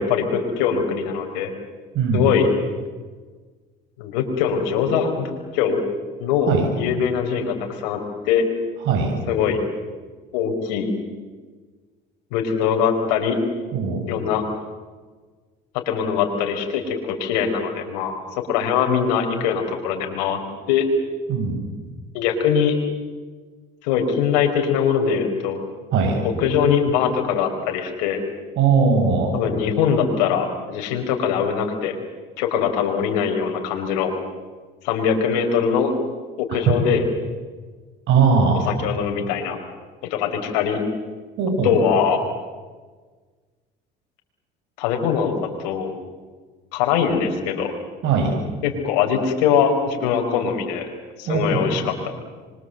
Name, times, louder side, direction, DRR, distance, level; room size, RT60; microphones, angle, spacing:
voice 1, 0.0-1.5 2.1-2.5 4.0-5.8 6.2-6.5 6.8-8.0 8.2-8.4 9.3-9.6 10.3-10.9 12.3-13.4 14.1-14.4 15.9-18.1 18.5-20.4 20.7-20.9 22.1-22.8 23.8-25.6 26.2-28.2 29.3-32.0 32.4-34.1 34.8-35.9 36.4-37.0 38.7-39.6 40.1-40.8 41.6-42.2 44.8-45.9 46.7-47.7 48.6-50.9 51.2-51.9, left 7 dB, 90° left, 3 dB, 4.7 m, -22 dB
voice 2, 13.7-14.0 21.3-21.6 25.9-26.2 28.6-29.4 36.5-36.6 38.1-38.7 41.4-41.8 48.0-48.3 51.3-51.6, right 5 dB, 65° right, 1 dB, 7.3 m, -19 dB
27.0 x 24.0 x 7.9 m, 1.4 s
supercardioid pair, 95°, 21 cm